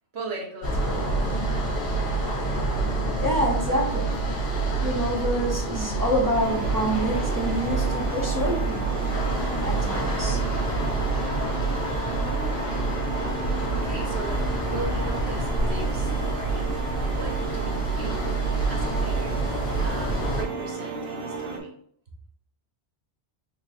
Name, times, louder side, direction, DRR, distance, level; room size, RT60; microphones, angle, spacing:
voice 1, 0.1-1.1 13.7-14.4 14.7-16.7 17.1-18.4 18.7-19.4 19.8-21.7, right 3 dB, 80° right, -1 dB, 1.2 m, -38 dB
sound 1, 0.6-20.4, right 3 dB, 60° left, 1.4 m, -27 dB
voice 2, 3.1-4.1 4.8-9.1 9.6-10.4, equal, 20° right, -2 dB, 0.7 m, -27 dB
sound 2, 6.3-21.6, right 3 dB, 60° right, 1.0 m, -34 dB
4.3 x 3.1 x 2.8 m, 0.63 s
omnidirectional pair, 1.1 m